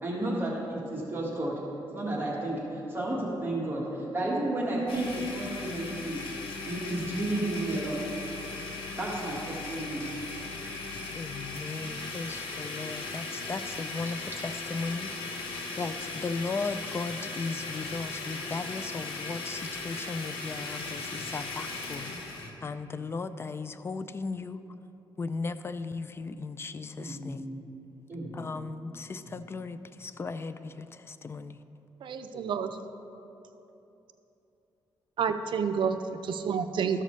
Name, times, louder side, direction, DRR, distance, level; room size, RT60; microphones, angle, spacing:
voice 1, 0.0-1.6 1.9-6.2 6.7-8.0 9.0-10.0 22.9-23.1 27.0-27.6 28.1-28.9 29.2-29.4, right 1 dB, 25° right, -5 dB, 1.7 m, -32 dB
Domestic sounds home sounds, 4.9-22.5, left 3 dB, 85° left, 1.1 m, -38 dB
voice 2, 11.1-15.1 15.8-22.3 22.6-24.6 25.2-27.4 28.3-31.6, left 4 dB, 30° left, 12 dB, 0.3 m, -36 dB
voice 3, 32.0-32.7 35.2-37.0, right 6 dB, 65° right, 8 dB, 0.5 m, -29 dB
13.5 x 6.6 x 3.2 m, 3.0 s
cardioid pair, 105°, 9 cm